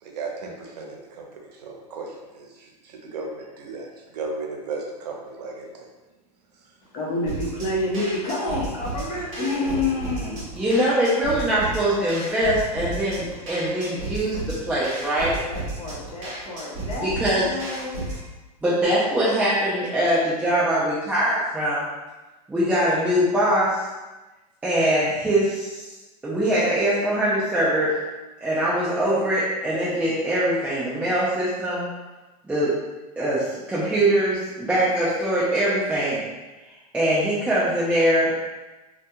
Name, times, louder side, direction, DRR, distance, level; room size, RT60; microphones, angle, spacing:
voice 1, 0.0-5.9, right 3 dB, 90° right, 0 dB, 0.6 m, -35 dB
voice 2, 6.9-10.4 15.5-17.1 17.3-18.0, left 2 dB, 30° left, -4 dB, 0.7 m, -28 dB
sound 1, 7.3-18.3, right 2 dB, 40° right, 1.0 m, -34 dB
voice 3, 10.5-15.4 17.0-17.4 18.6-21.8 22.5-23.8 24.6-25.9 26.2-28.0 28.4-31.9 32.5-32.8 33.2-36.2 36.9-38.3, right 1 dB, 5° right, -10 dB, 0.4 m, -22 dB
2.2 x 2.2 x 2.7 m, 1.1 s
supercardioid pair, 135°, 20 cm